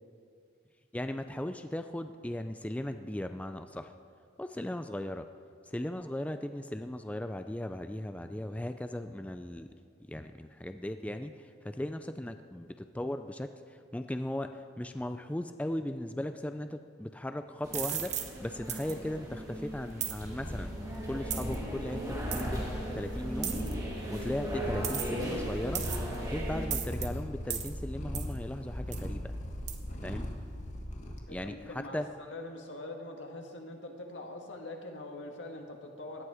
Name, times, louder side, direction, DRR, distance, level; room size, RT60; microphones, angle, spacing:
voice 1, 0.9-3.9 4.4-5.3 5.6-9.7 10.1-20.7 21.1-22.6 22.9-23.5 24.1-25.9 26.2-29.3 30.0-30.3 31.3-32.1, left 1 dB, 5° left, 8 dB, 0.3 m, -37 dB
sound 1, 17.6-26.7, right 1 dB, 20° right, 2.7 m, -38 dB
sound 2, 17.7-18.3 18.7-18.9 20.0-20.2 21.3-21.5 22.3-22.4 23.4-23.7 24.8-25.2 25.7-26.1 26.7-27.1 27.5-27.7 28.1-28.3 28.9-29.0 29.7-29.8, right 9 dB, 40° right, 1.0 m, -35 dB
Purr, 20.0-31.2, equal, 40° left, 1.6 m, -39 dB
voice 2, 29.8-30.3 31.3-36.2, left 2 dB, 80° left, 2 dB, 1.9 m, -44 dB
17.5 x 11.5 x 4.9 m, 2.2 s
head